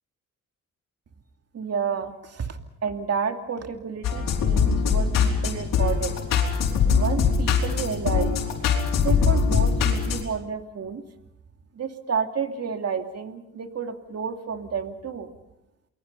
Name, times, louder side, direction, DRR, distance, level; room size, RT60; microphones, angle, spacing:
voice 1, 1.5-6.1 6.9-8.4 9.0-11.0 11.7-15.3, right 6 dB, 50° right, 5 dB, 2.6 m, -30 dB
sound 1, 4.0-10.2, left 6 dB, 85° left, 4.7 m, -22 dB
29.0 x 22.5 x 5.5 m, 0.90 s
cardioid pair, 70°, 32 cm